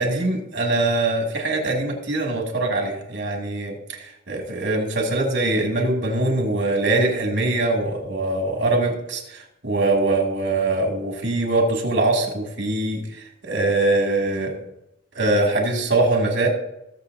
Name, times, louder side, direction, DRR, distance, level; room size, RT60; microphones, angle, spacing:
voice 1, 0.0-14.6 15.1-16.5, right 2 dB, 60° right, 0 dB, 2.7 m, -22 dB
21.0 x 7.1 x 2.8 m, 0.87 s
head